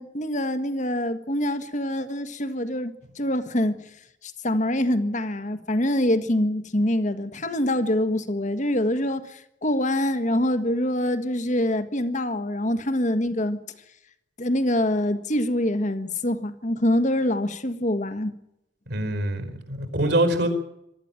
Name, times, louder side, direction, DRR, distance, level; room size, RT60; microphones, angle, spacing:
voice 1, 0.0-3.9 4.2-13.6 14.4-18.4, left 1 dB, 40° left, 1.6 m, -25 dB
voice 2, 18.9-20.5, right 1 dB, 65° right, 4.7 m, -24 dB
24.0 x 13.5 x 9.0 m
head